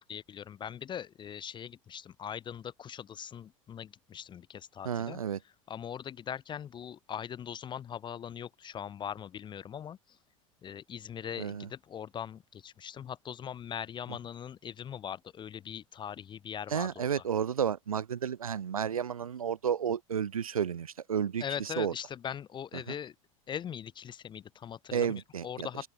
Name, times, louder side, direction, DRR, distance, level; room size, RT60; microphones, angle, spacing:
voice 1, 0.0-5.2 5.7-10.2 10.6-17.2 21.4-23.1 23.5-25.9, left 8 dB, 25° left, 0.6 m, -41 dB
voice 2, 4.8-5.4 11.4-11.7 16.7-21.9 24.9-25.7, right 8 dB, 85° right, 0.5 m, -32 dB
open air
figure-of-eight pair, 75°, 18 cm